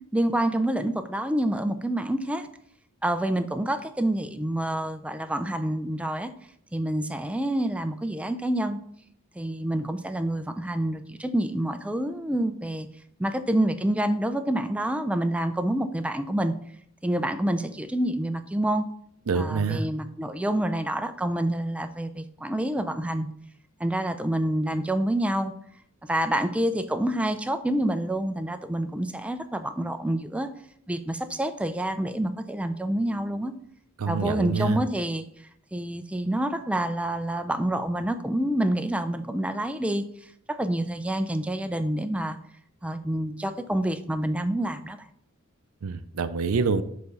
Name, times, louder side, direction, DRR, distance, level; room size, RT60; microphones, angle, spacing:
voice 1, 0.1-2.5 3.0-6.3 6.7-8.8 9.4-12.9 13.2-16.5 17.0-18.9 19.3-23.3 23.8-25.5 26.0-30.5 30.9-33.5 34.1-35.2 35.7-40.0 40.5-42.4 42.8-45.0, right 1 dB, 5° right, 9 dB, 0.4 m, -27 dB
voice 2, 19.3-19.9 34.0-34.8 45.8-46.8, right 4 dB, 70° right, 11 dB, 0.5 m, -26 dB
6.7 x 4.1 x 5.2 m, 0.69 s
head